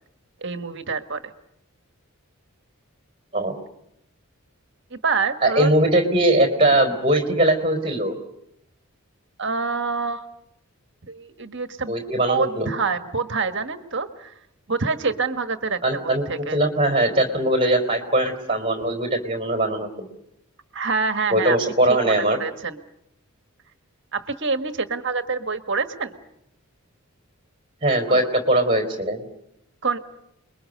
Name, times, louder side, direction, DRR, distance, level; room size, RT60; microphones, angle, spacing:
voice 1, 0.4-1.2 4.9-5.7 9.4-10.3 11.1-14.3 14.7-16.6 20.7-21.7 22.0-22.8 24.1-26.1 28.1-28.3 29.8-30.0, right 4 dB, 55° right, 8 dB, 1.5 m, -26 dB
voice 2, 5.4-8.2 11.9-12.7 15.8-16.2 16.5-20.1 21.3-22.4 27.8-29.2, right 1 dB, 25° right, 5 dB, 4.0 m, -20 dB
29.5 x 22.0 x 6.6 m, 0.81 s
head